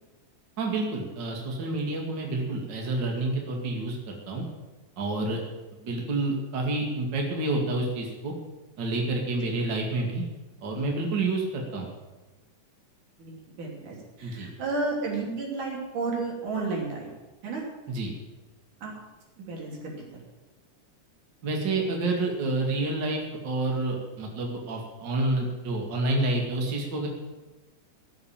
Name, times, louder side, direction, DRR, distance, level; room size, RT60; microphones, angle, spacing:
voice 1, 0.6-4.4 5.0-5.4 5.8-8.3 8.8-10.2 10.6-11.9 14.2-14.5 17.9-18.1 21.4-27.1, right 2 dB, 35° right, 0 dB, 2.6 m, -29 dB
voice 2, 13.2-17.1 17.4-17.6 18.8-18.9 19.4-19.9, right 3 dB, 75° right, -2 dB, 4.6 m, -32 dB
17.0 x 6.9 x 8.9 m, 1.1 s
omnidirectional pair, 3.6 m